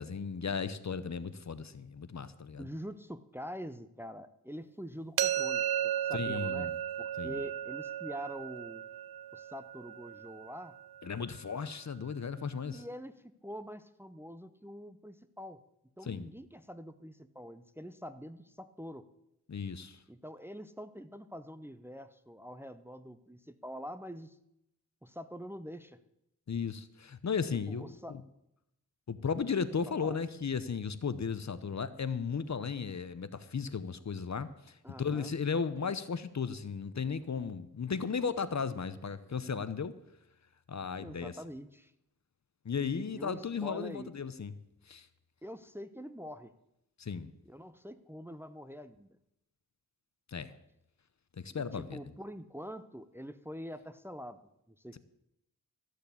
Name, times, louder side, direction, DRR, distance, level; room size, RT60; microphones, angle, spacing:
voice 1, 0.0-2.7 6.1-6.7 7.2-7.4 11.0-12.8 16.0-16.3 19.5-20.0 26.5-28.2 29.1-39.9 40.7-41.3 42.6-44.5 44.9-45.1 47.0-47.3 50.3-50.5 51.4-52.0, left 6 dB, 50° left, 14 dB, 0.8 m, -35 dB
voice 2, 2.6-6.7 7.0-8.8 9.3-10.7 12.7-15.6 16.0-19.0 20.1-24.4 25.0-26.0 27.5-28.1 30.0-30.2 34.8-35.3 41.0-41.9 43.1-44.1 45.4-46.5 47.4-49.1 51.5-54.4 54.7-55.0, equal, 5° right, 11 dB, 0.7 m, -45 dB
sound 1, 5.2-11.0, right 10 dB, 90° right, 0.6 m, -35 dB
13.5 x 6.6 x 8.4 m, 0.83 s
cardioid pair, 65°, 35 cm